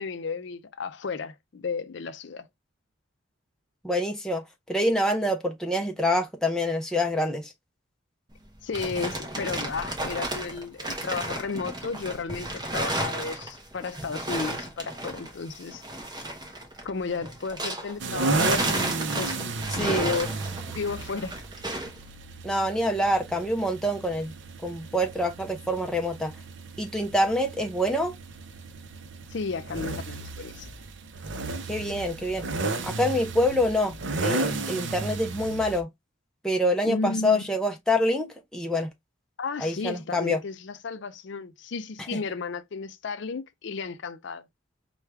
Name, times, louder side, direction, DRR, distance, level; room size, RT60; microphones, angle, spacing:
voice 1, 0.0-2.5 8.6-15.8 16.8-18.5 19.2-19.4 19.8-20.3 20.7-21.3 29.3-30.7 36.8-37.4 39.4-44.4, left 4 dB, 60° left, 0.4 m, -33 dB
voice 2, 3.8-7.5 19.7-20.1 22.4-24.3 24.6-26.3 26.8-28.1 31.7-32.5 32.8-33.9 34.2-35.9 36.4-38.9 39.6-40.4 42.1-42.2, left 1 dB, 5° left, 0.5 m, -26 dB
sound 1, 8.3-18.0 18.3-22.0, right 1 dB, 20° right, 0.8 m, -33 dB
sound 2, 18.0-35.8, right 3 dB, 60° right, 0.5 m, -33 dB
4.5 x 2.3 x 3.3 m
head